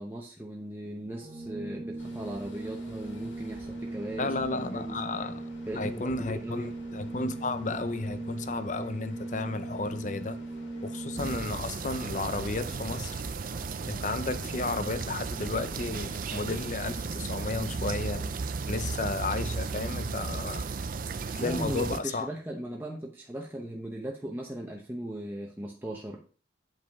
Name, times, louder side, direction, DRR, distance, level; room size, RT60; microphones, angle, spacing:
voice 1, 0.0-5.0 5.7-6.8 21.4-26.2, right 1 dB, 10° right, 0.8 m, -38 dB
Organ, 1.1-11.9, right 2 dB, 30° right, 1.1 m, -39 dB
sound 1, 2.0-16.7, left 1 dB, 85° left, 2.3 m, -51 dB
voice 2, 4.2-10.4 10.8-13.2 13.9-18.3 18.7-20.7 21.3-22.3, left 3 dB, 40° left, 0.6 m, -33 dB
sound 2, 11.2-22.0, right 4 dB, 45° right, 0.4 m, -35 dB
9.0 x 5.3 x 3.5 m
head